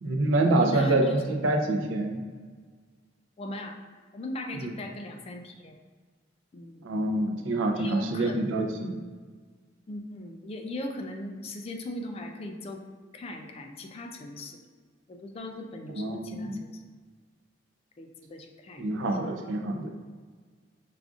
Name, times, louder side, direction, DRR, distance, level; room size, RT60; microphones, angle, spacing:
voice 1, 0.0-2.2 4.6-4.7 6.8-9.0 15.9-16.6 18.8-19.9, right 2 dB, 85° right, 3 dB, 0.5 m, -26 dB
voice 2, 0.5-1.4 3.4-3.8 4.1-5.8 6.5-6.9 7.7-8.7 9.9-12.8 13.1-14.6 15.1-16.7 18.0-18.9, left 1 dB, 30° left, 4 dB, 0.3 m, -38 dB
4.8 x 2.4 x 2.4 m, 1.5 s
head